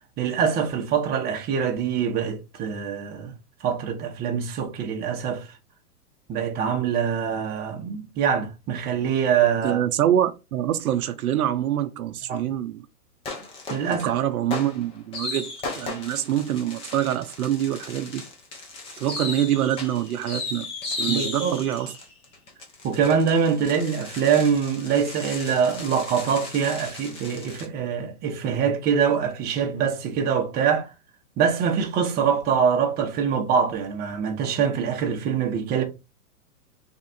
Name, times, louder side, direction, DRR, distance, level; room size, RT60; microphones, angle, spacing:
voice 1, 0.2-3.3 3.6-5.5 6.3-9.8 12.3-12.4 13.7-14.1 21.1-21.5 22.8-30.9 31.4-35.8, right 7 dB, 20° right, 0.8 m, -24 dB
voice 2, 9.6-12.9 13.9-18.2 19.0-21.9, right 11 dB, 65° right, 0.6 m, -25 dB
sound 1, 13.2-14.1 14.5-27.7, left 3 dB, 15° left, 0.5 m, -36 dB
3.5 x 2.4 x 4.1 m
hypercardioid pair, 130°, 46 cm